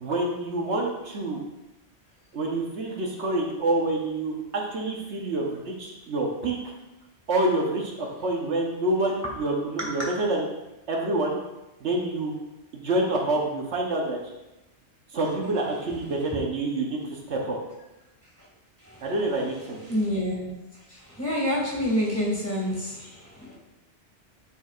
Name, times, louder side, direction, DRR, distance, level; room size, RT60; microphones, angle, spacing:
voice 1, 0.0-1.4 2.3-6.6 7.3-10.4 10.9-11.4 11.8-12.3 12.7-14.2 15.1-17.6 19.0-19.8, right 2 dB, 75° right, -1 dB, 1.3 m, -27 dB
voice 2, 19.9-20.5 20.9-23.6, equal, 15° left, -4 dB, 2.1 m, -28 dB
9.9 x 4.6 x 2.5 m, 0.97 s
omnidirectional pair, 1.2 m